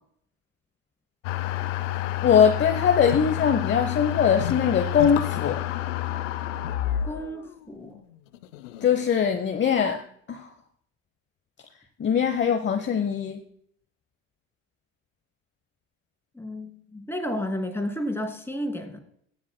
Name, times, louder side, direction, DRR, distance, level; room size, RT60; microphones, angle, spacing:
sound 1, 1.2-9.4, left 13 dB, 85° left, 0.7 m, -30 dB
voice 1, 2.2-5.6 8.8-10.0 10.3-10.5 12.0-13.4, left 7 dB, 30° left, 6 dB, 0.9 m, -22 dB
voice 2, 7.0-8.0 16.3-19.0, equal, 5° left, 3 dB, 2.7 m, -32 dB
20.0 x 7.2 x 2.2 m, 0.65 s
hypercardioid pair, 80°, 36 cm